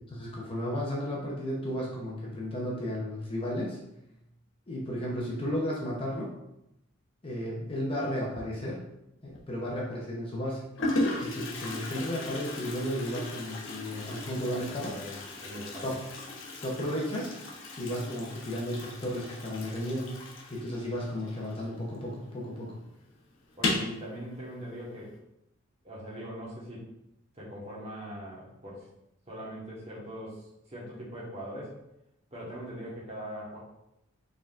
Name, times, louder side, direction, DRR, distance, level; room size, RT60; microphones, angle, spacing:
voice 1, 0.1-3.8 4.7-6.4 7.2-8.9 9.2-10.7 11.2-15.0 15.8-16.1 16.6-17.4 17.8-22.8, equal, 25° left, -3 dB, 0.7 m, -34 dB
Toilet flush, 9.3-9.7 10.4-10.5 10.8-22.1 22.3-22.4 22.7-22.8 23.5-24.0, left 2 dB, 60° left, 0.9 m, -36 dB
voice 2, 14.9-15.8 23.6-25.2 25.8-26.9 27.3-28.9 29.3-31.8 32.3-33.6, equal, 30° right, -6 dB, 1.3 m, -41 dB
4.6 x 3.6 x 2.5 m, 0.84 s
head